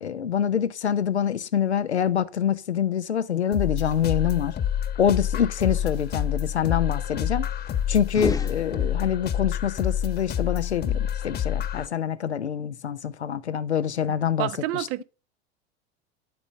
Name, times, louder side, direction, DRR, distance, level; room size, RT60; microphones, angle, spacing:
voice 1, 0.0-4.6 5.0-7.5 7.9-14.9, left 8 dB, 90° left, 0.8 m, -25 dB
sound 1, 3.5-11.9, left 9 dB, 30° left, 1.2 m, -28 dB
sound 2, 8.0-9.4, left 4 dB, 10° left, 1.1 m, -32 dB
voice 2, 14.4-15.0, right 17 dB, 45° right, 0.9 m, -28 dB
12.0 x 5.1 x 8.8 m
hypercardioid pair, 85°, 32 cm